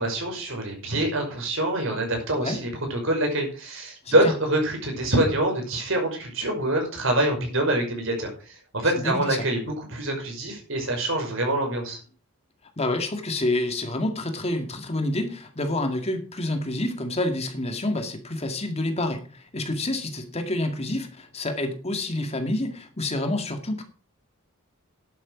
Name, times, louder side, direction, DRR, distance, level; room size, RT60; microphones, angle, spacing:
voice 1, 0.0-12.0, right 1 dB, 60° right, 2 dB, 5.7 m, -25 dB
voice 2, 8.8-9.5 12.8-23.8, left 1 dB, 30° left, 6 dB, 2.0 m, -28 dB
11.5 x 9.1 x 6.0 m, 0.38 s
head